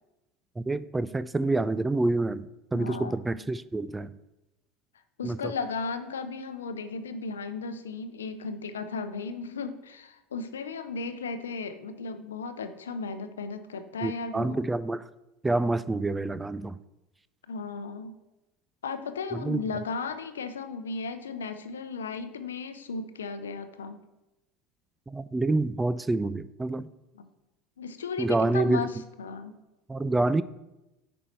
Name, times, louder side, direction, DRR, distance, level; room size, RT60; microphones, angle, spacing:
voice 1, 0.6-4.1 5.2-5.5 14.0-15.1 15.4-16.8 19.3-19.6 25.1-26.9 28.2-28.9 29.9-30.4, right 2 dB, 15° right, 16 dB, 0.4 m, -27 dB
voice 2, 2.7-3.1 5.2-14.6 17.5-18.1 18.8-24.0 27.2-27.3 27.8-28.9 29.2-29.5, left 4 dB, 90° left, 10 dB, 0.6 m, -35 dB
8.9 x 5.3 x 4.3 m, 0.97 s
hypercardioid pair, 80°, 0 cm